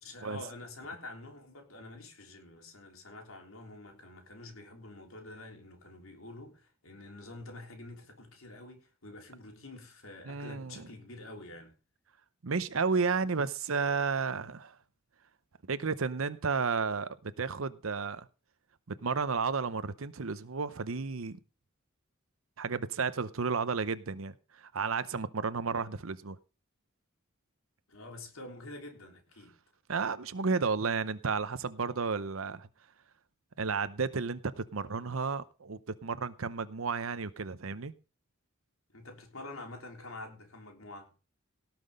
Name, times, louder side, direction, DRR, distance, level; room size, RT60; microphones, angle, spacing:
voice 1, 0.0-11.7 27.9-29.6 38.9-41.1, left 2 dB, 80° left, 3.6 m, -47 dB
voice 2, 10.2-10.8 12.4-14.8 15.7-18.3 18.9-21.4 22.6-26.4 29.9-32.7 33.6-37.9, right 5 dB, 75° right, 0.8 m, -32 dB
18.0 x 6.0 x 5.2 m
head